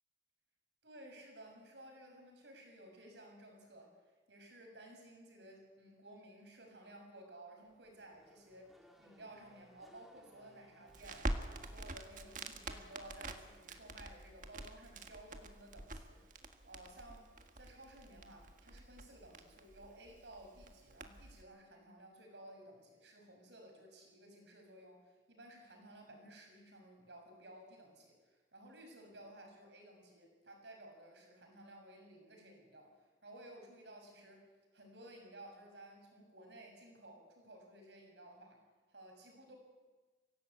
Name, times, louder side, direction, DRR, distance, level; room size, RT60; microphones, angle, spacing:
voice 1, 0.8-3.9 4.3-8.7 9.0-32.9 33.2-34.5 34.7-38.6 38.9-39.6, right 1 dB, 85° right, 2 dB, 6.5 m, -56 dB
Race car auto racing / Accelerating revving vroom, 7.6-14.3, equal, ahead, 1.9 m, -67 dB
Crackle, 10.9-21.4, right 2 dB, 45° right, 1.6 m, -46 dB
24.5 x 16.0 x 8.4 m, 1.3 s
head